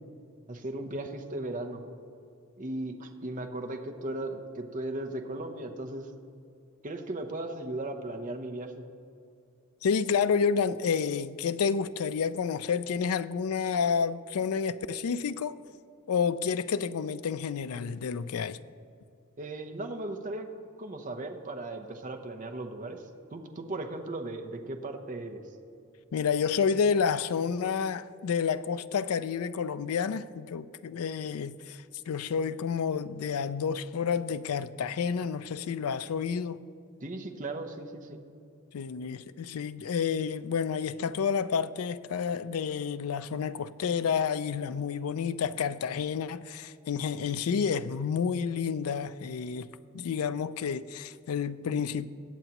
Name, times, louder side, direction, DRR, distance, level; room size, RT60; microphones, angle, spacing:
voice 1, 0.5-1.8 2.6-6.1 6.8-8.8 19.4-20.5 20.8-23.0 23.3-25.4 37.0-38.2, right 2 dB, 35° right, 0.8 m, -37 dB
voice 2, 9.8-15.6 16.1-18.6 26.1-36.6 38.7-49.7 49.9-52.1, left 6 dB, 85° left, 0.4 m, -30 dB
21.5 x 8.1 x 3.0 m
head